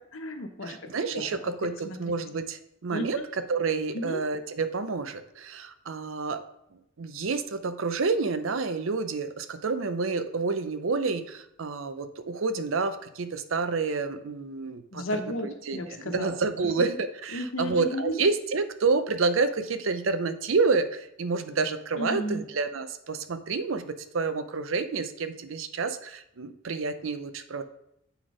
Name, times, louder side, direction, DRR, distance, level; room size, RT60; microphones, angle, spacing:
voice 1, 0.0-0.7 1.1-1.3 1.8-2.2 2.9-3.2 3.9-4.2 14.9-16.3 16.8-17.0 17.3-18.1 22.0-22.4, left 1 dB, 90° left, 5 dB, 1.0 m, -33 dB
voice 2, 0.6-3.2 3.5-6.4 7.0-15.0 15.4-27.6, right 4 dB, 85° right, 11 dB, 0.6 m, -29 dB
8.0 x 4.0 x 5.0 m, 0.78 s
head